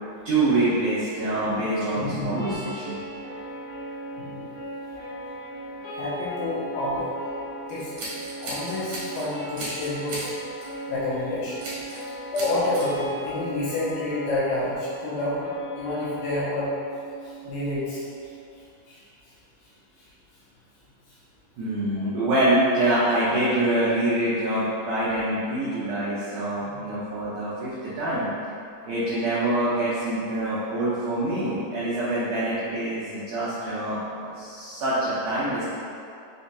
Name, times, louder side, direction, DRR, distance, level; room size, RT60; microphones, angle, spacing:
voice 1, 0.3-2.9 21.6-28.3 28.8-35.7, right 1 dB, 85° right, -12 dB, 1.8 m, -25 dB
voice 2, 1.9-2.6 4.1-4.5 5.9-7.1 7.7-7.9 8.4-10.3 10.9-11.8 12.3-16.7 17.2-18.0 18.9-19.0 22.0-22.1 26.7-26.8, left 2 dB, 75° left, -9 dB, 2.1 m, -29 dB
sound 1, 2.4-18.4, right 1 dB, 60° left, 1.6 m, -37 dB
Scissors, 7.7-9.3 9.6-10.3 10.6-10.8 11.6-12.1 12.3-12.9, right 1 dB, 70° right, 1.7 m, -36 dB
6.1 x 2.2 x 2.6 m, 2.4 s
omnidirectional pair, 4.6 m